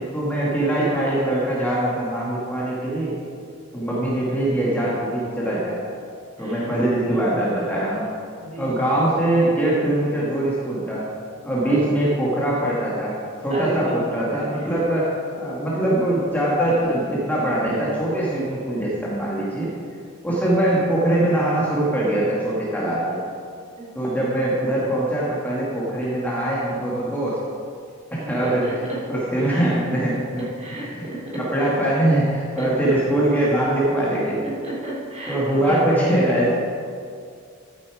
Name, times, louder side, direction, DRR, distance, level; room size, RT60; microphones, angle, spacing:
voice 1, 0.0-3.1 3.7-5.8 6.4-8.1 8.6-11.0 11.4-13.2 13.4-19.7 20.2-23.2 24.0-27.4 28.1-30.4 30.8-31.1 31.3-34.5 35.3-36.6, right 1 dB, 10° left, -6 dB, 1.9 m, -22 dB
voice 2, 13.5-14.0 28.4-28.7 30.6-31.2 31.6-31.7 32.6-32.7 34.4-35.8, right 2 dB, 30° right, -5 dB, 3.0 m, -31 dB
14.0 x 8.6 x 4.9 m, 2.3 s
head